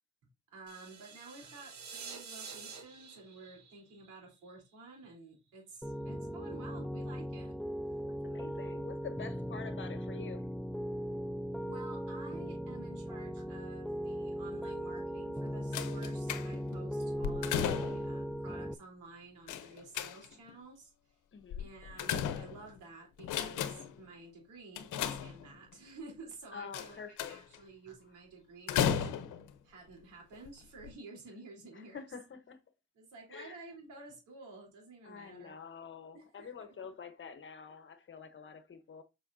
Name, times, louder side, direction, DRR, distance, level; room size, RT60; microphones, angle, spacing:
voice 1, 0.5-7.6 11.7-20.9 21.6-29.1 29.6-32.0 32.9-35.5 36.1-36.5, right 3 dB, 90° right, 3.7 m, -52 dB
sound 1, 0.7-4.7, right 5 dB, 70° right, 2.0 m, -48 dB
Piano, 5.8-18.7, equal, ahead, 0.5 m, -38 dB
voice 2, 8.1-10.4 21.3-21.7 26.5-27.4 31.7-32.6 33.3-33.6 35.0-39.0, left 6 dB, 40° left, 1.1 m, -47 dB
sound 2, 15.7-16.8 17.2-18.2 19.5-20.5 21.5-22.8 23.2-24.0 24.7-25.7 26.7-27.6 28.7-29.5 30.3-30.5 30.8-30.9, left 9 dB, 80° left, 0.9 m, -35 dB
7.3 x 5.9 x 2.7 m
cardioid pair, 90°, 30 cm